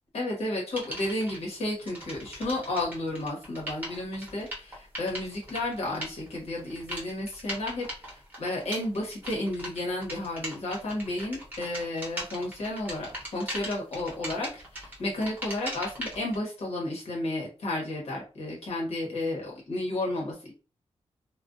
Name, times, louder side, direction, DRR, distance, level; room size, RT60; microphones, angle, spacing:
voice 1, 0.1-20.5, left 1 dB, 75° left, -2 dB, 1.0 m, -32 dB
sound 1, 0.8-1.4 1.8-16.4, equal, 15° right, 0.9 m, -39 dB
2.4 x 2.3 x 2.5 m, 0.35 s
wide cardioid pair, 170°, 11 cm